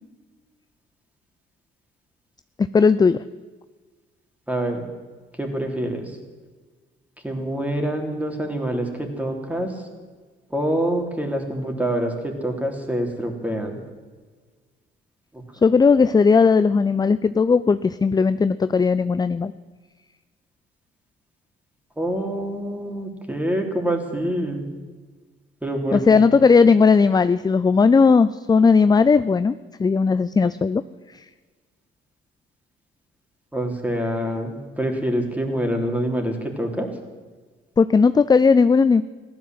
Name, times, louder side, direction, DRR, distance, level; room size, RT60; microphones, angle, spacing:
voice 1, 2.7-3.2 15.6-19.5 25.9-30.8 37.8-39.0, left 5 dB, 20° left, 14 dB, 0.4 m, -17 dB
voice 2, 4.5-4.8 5.4-6.1 7.2-9.7 10.5-13.7 15.3-15.4 22.0-24.7 25.6-26.2 33.5-36.9, right 1 dB, 5° right, 3 dB, 3.2 m, -26 dB
15.5 x 12.0 x 7.7 m, 1.4 s
cardioid pair, 90°, 20 cm